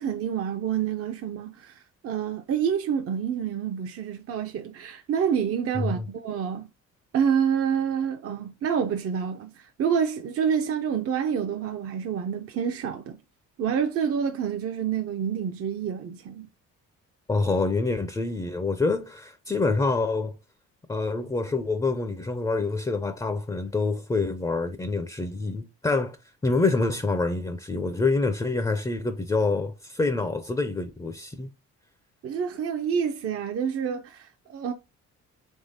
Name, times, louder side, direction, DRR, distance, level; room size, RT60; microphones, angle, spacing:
voice 1, 0.0-6.7 7.1-13.2 13.6-16.5 32.2-34.7, right 7 dB, 50° right, 0.6 m, -28 dB
voice 2, 5.7-6.0 17.3-20.3 20.9-26.2 26.4-31.5, left 3 dB, 15° left, 0.5 m, -26 dB
3.6 x 3.1 x 4.0 m
cardioid pair, 90°, 30 cm